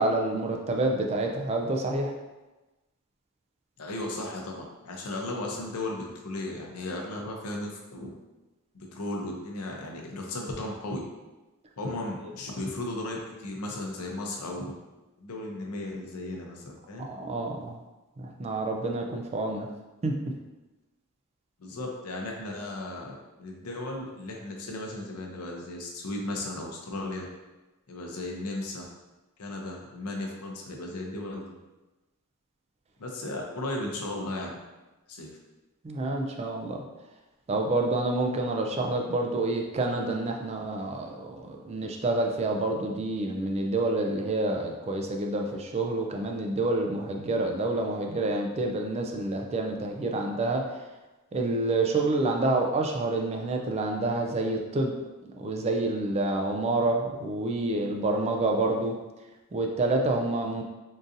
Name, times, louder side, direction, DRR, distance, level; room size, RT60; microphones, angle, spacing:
voice 1, 0.0-2.1 17.1-17.8 18.2-19.7 20.0-20.2 35.8-36.8 37.5-50.9 51.3-54.9 55.3-59.0 59.5-60.6, right 2 dB, 30° right, 2 dB, 0.3 m, -28 dB
voice 2, 3.8-8.1 8.7-11.0 11.8-14.7 15.2-17.1 21.6-27.2 27.9-28.8 29.4-31.4 33.0-34.6 35.1-35.3, left 2 dB, 85° left, 0 dB, 0.6 m, -35 dB
3.8 x 2.6 x 2.5 m, 1.1 s
head